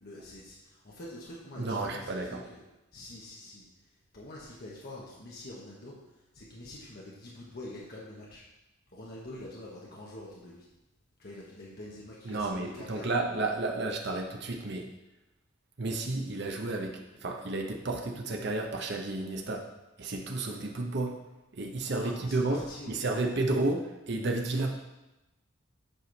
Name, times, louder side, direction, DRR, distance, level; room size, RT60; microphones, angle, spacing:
voice 1, 0.0-2.6 2.9-3.6 4.1-5.9 6.3-8.4 8.9-10.7 11.2-13.1 21.9-23.5, left 1 dB, 50° left, -5 dB, 1.3 m, -45 dB
voice 2, 1.6-2.4 12.2-14.9 15.8-19.6 20.0-21.2 21.5-22.6 22.9-24.8, right 2 dB, 55° right, 1 dB, 0.8 m, -32 dB
8.4 x 5.0 x 4.0 m, 0.98 s
head